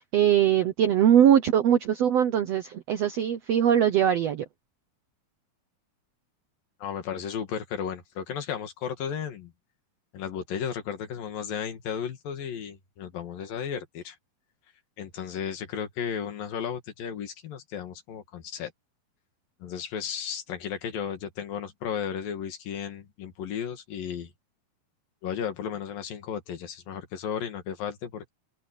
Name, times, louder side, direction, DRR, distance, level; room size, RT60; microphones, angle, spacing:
voice 1, 0.0-4.4, right 9 dB, 75° right, 1.5 m, -21 dB
voice 2, 6.8-9.5 10.1-14.2 15.0-18.7 19.6-24.3 25.2-28.3, left 8 dB, 75° left, 3.8 m, -34 dB
omnidirectional pair, 4.1 m